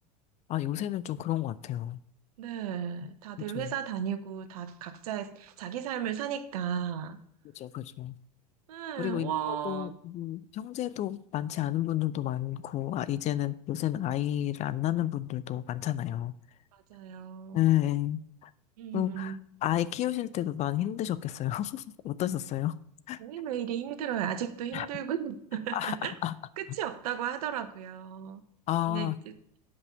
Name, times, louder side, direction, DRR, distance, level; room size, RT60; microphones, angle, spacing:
voice 1, 0.5-2.0 3.5-3.7 7.5-8.2 8.9-16.3 17.5-18.5 18.9-22.7 23.1-23.2 24.7-24.9 25.7-26.3 28.7-29.2, left 13 dB, 35° left, 0.4 m, -31 dB
voice 2, 2.4-7.2 8.7-9.9 16.7-17.6 18.8-19.4 23.2-26.1 26.6-28.4 28.8-29.1, right 9 dB, 65° right, 0.9 m, -35 dB
8.1 x 5.3 x 6.9 m
hypercardioid pair, 90°, 21 cm